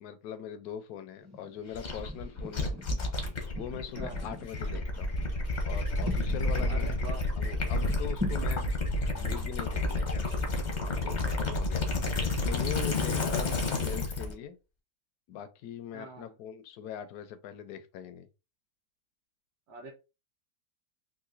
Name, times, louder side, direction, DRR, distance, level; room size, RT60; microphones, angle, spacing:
voice 1, 0.0-2.7 3.5-5.2 5.7-7.0 7.4-8.7 9.1-10.2 11.0-11.8 12.4-14.6 15.3-18.3, left 9 dB, 75° left, 1.1 m, -41 dB
sound 1, 1.2-1.6 2.1-6.7 7.1-7.2 7.9-8.4, left 2 dB, 20° right, 0.5 m, -41 dB
Gurgling / Liquid, 1.7-14.3, left 2 dB, 45° left, 0.6 m, -30 dB
voice 2, 4.0-4.3 6.6-7.2 11.9-12.0 13.3-13.7 15.9-16.4 19.7-19.9, right 1 dB, 70° right, 1.4 m, -44 dB
3.8 x 2.5 x 2.5 m
omnidirectional pair, 1.8 m